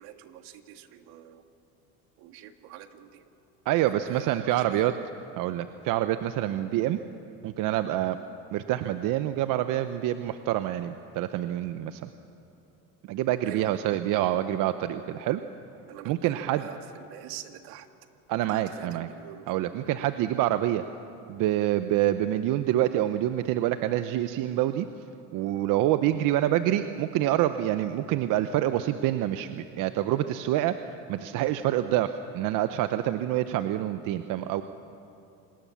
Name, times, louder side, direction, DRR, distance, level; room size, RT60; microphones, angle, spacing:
voice 1, 0.0-1.4 2.2-3.2 3.9-5.1 13.4-13.7 15.9-17.9 18.3-19.5, right 11 dB, 80° right, 8 dB, 1.7 m, -45 dB
voice 2, 3.6-4.9 5.4-7.0 7.4-8.2 8.5-12.1 13.0-15.4 16.1-16.7 18.3-19.1 19.5-20.8 21.3-24.9 25.3-30.7 31.1-34.6, right 13 dB, 60° right, 10 dB, 0.8 m, -26 dB
27.5 x 19.5 x 7.1 m, 2.7 s
supercardioid pair, 115°, 36 cm